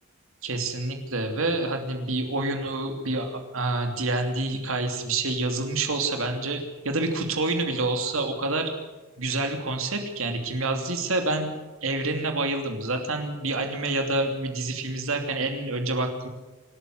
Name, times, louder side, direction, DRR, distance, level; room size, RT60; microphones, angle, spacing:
voice 1, 0.4-8.7 9.2-16.3, right 2 dB, 70° right, 4 dB, 2.9 m, -28 dB
27.0 x 13.0 x 7.9 m, 1.2 s
head